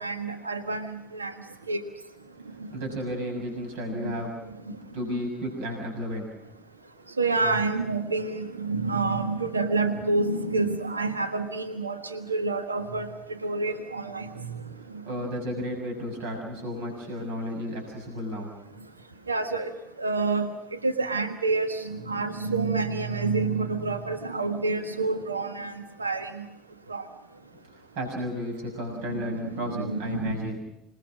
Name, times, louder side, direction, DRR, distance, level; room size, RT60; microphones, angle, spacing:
voice 1, 0.0-1.3 1.7-1.8 3.9-4.2 7.2-14.6 19.3-19.7 20.0-26.4 26.9-27.1 29.1-30.4, right 3 dB, 85° right, 8 dB, 1.5 m, -28 dB
voice 2, 2.7-4.4 4.7-6.3 15.0-18.5 27.9-30.6, equal, 60° right, 1 dB, 6.6 m, -33 dB
27.0 x 20.5 x 6.2 m, 0.87 s
figure-of-eight pair, 65°, 0 cm